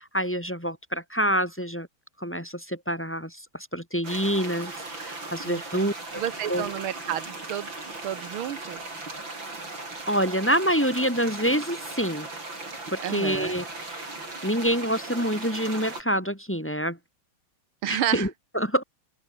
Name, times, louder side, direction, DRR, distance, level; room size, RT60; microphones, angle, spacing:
voice 1, 0.0-1.9 2.2-4.7 5.0-6.2 6.5-6.7 10.1-12.3 12.9-14.1 14.4-17.0 17.9-18.8, equal, 5° left, 2.9 m, -27 dB
sound 1, 4.0-16.0, right 2 dB, 65° right, 7.3 m, -38 dB
voice 2, 5.4-7.7 8.0-8.8 13.0-13.5 17.8-18.3, right 11 dB, 85° right, 2.0 m, -31 dB
open air
omnidirectional pair, 2.3 m